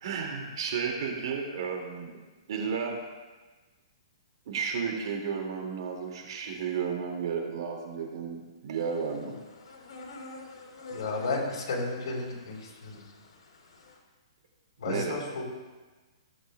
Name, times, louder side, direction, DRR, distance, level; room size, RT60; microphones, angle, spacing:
voice 1, 0.0-2.1 2.5-3.0 4.5-9.3 14.8-15.2, right 6 dB, 60° right, 1 dB, 2.2 m, -33 dB
sound 1, 8.7-14.0, left 2 dB, 85° left, 2.2 m, -48 dB
voice 2, 10.9-13.0 14.8-15.4, left 3 dB, 70° left, -2 dB, 3.5 m, -33 dB
17.0 x 7.9 x 2.3 m, 1.3 s
hypercardioid pair, 155°, 3 cm